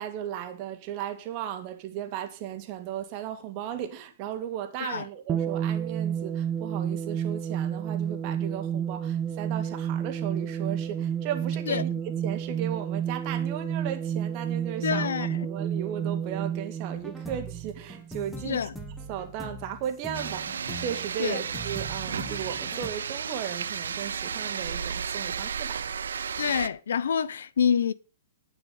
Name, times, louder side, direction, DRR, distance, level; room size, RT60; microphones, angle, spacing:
voice 1, 0.0-11.9 12.2-18.6 19.1-25.8, right 10 dB, 40° right, 2.4 m, -36 dB
sound 1, 5.3-18.1, right 8 dB, 20° right, 0.9 m, -30 dB
voice 2, 14.8-15.5 18.4-18.7 21.2-21.4 26.4-27.9, left 7 dB, 75° left, 0.8 m, -27 dB
sound 2, 17.0-22.9, right 2 dB, ahead, 2.9 m, -41 dB
sound 3, 20.1-26.7, right 7 dB, 80° right, 0.6 m, -33 dB
11.0 x 8.7 x 5.4 m
hypercardioid pair, 125°, 0 cm